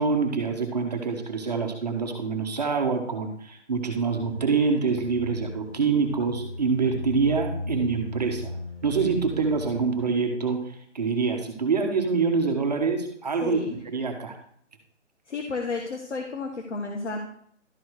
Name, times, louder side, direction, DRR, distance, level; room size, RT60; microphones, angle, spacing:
voice 1, 0.0-8.5 8.8-14.4, right 4 dB, 35° right, 4 dB, 1.3 m, -26 dB
sound 1, 4.1-10.1, left 1 dB, 20° left, 1.9 m, -37 dB
voice 2, 13.4-13.7 15.3-17.2, left 4 dB, 70° left, 2 dB, 1.5 m, -32 dB
12.5 x 4.5 x 4.7 m, 0.64 s
figure-of-eight pair, 165°, 37 cm